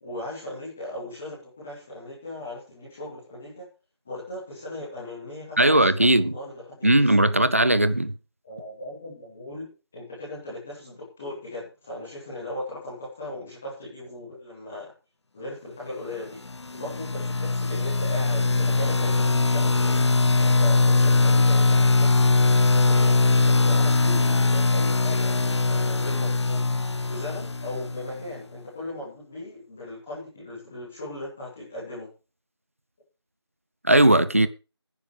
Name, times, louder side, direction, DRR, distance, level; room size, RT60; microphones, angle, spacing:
voice 1, 0.0-3.7 4.0-7.3 8.4-14.9 15.3-16.4 16.7-20.0 20.3-26.6 27.1-32.1, left 1 dB, 5° left, 0.9 m, -38 dB
voice 2, 5.6-6.3 6.8-8.1 33.8-34.5, right 1 dB, 30° right, 0.7 m, -18 dB
sound 1, 16.4-28.2, left 3 dB, 85° left, 0.5 m, -21 dB
17.5 x 9.8 x 3.3 m
figure-of-eight pair, 175°, 14 cm